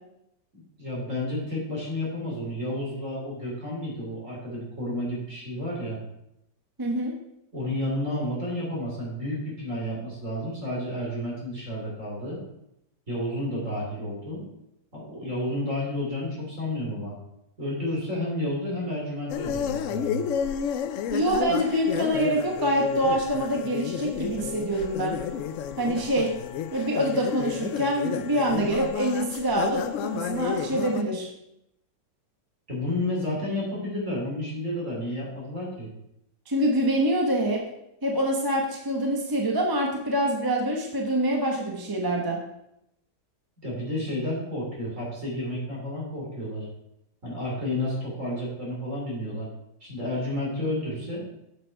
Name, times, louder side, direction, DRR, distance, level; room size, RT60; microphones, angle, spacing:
voice 1, 0.5-6.0 7.5-12.4 13.1-14.4 14.9-17.2 17.6-20.2 32.7-35.9 43.6-46.7 47.2-49.5 49.8-51.2, left 1 dB, 45° right, -4 dB, 3.5 m, -31 dB
voice 2, 6.8-7.1 21.1-25.2 25.8-26.3 26.7-31.3 36.5-37.6 38.0-42.4, right 1 dB, 15° right, 0 dB, 0.9 m, -25 dB
sound 1, 19.3-31.0, left 8 dB, 75° left, 0.7 m, -31 dB
7.8 x 7.5 x 4.6 m, 0.81 s
omnidirectional pair, 1.9 m